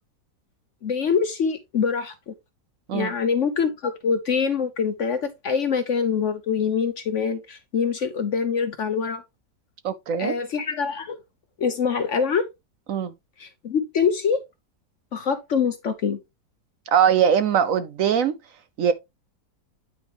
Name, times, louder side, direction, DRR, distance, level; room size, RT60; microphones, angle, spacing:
voice 1, 0.8-2.3 2.9-9.2 10.2-11.2 11.6-12.5 13.4-14.4 15.1-16.2, left 6 dB, 55° left, 0.9 m, -24 dB
voice 2, 9.8-10.3 12.9-13.1 16.9-18.3 18.8-18.9, right 8 dB, 65° right, 0.8 m, -21 dB
9.2 x 5.0 x 2.9 m
omnidirectional pair, 1.8 m